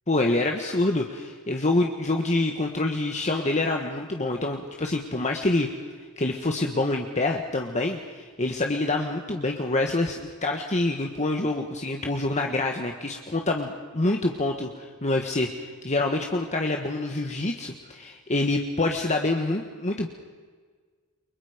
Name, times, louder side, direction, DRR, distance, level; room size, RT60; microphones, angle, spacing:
voice 1, 0.1-5.7 6.2-15.5 15.8-20.1, left 2 dB, 30° left, 2 dB, 1.5 m, -26 dB
29.5 x 24.0 x 5.1 m, 1.5 s
head